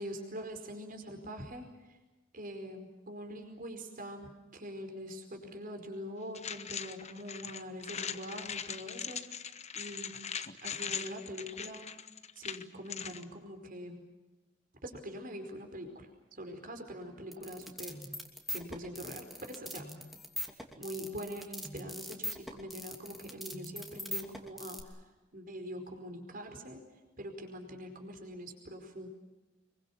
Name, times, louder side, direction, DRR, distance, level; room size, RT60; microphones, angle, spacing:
voice 1, 0.0-2.0 2.3-10.1 10.6-11.8 12.4-14.0 14.8-18.0 18.5-19.9 20.8-25.0 25.3-26.8 27.2-29.1, equal, 45° right, 5 dB, 4.8 m, -44 dB
sound 1, 6.3-13.2, left 7 dB, 35° left, 1.1 m, -40 dB
sound 2, 17.3-24.8, left 1 dB, ahead, 2.8 m, -41 dB
26.0 x 23.0 x 7.2 m, 1.1 s
head